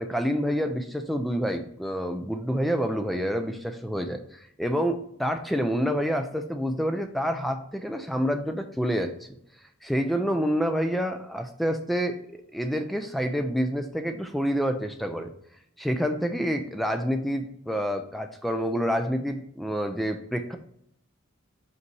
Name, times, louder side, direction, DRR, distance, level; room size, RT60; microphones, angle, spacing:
voice 1, 0.0-9.1 9.8-15.3 15.8-20.6, equal, ahead, 6 dB, 0.4 m, -28 dB
5.5 x 4.0 x 4.6 m, 0.72 s
head